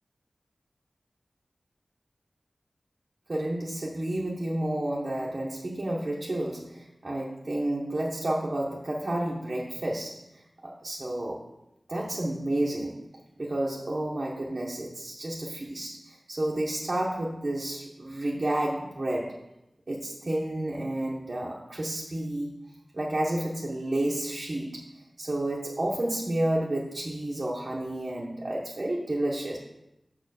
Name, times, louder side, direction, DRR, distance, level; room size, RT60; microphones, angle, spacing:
voice 1, 3.3-10.2 10.6-11.4 11.9-13.0 13.4-19.4 19.9-22.6 22.9-24.8 25.2-29.6, right 1 dB, 45° right, -3 dB, 1.0 m, -30 dB
6.2 x 4.4 x 6.4 m, 0.89 s
wide cardioid pair, 85°, 0 cm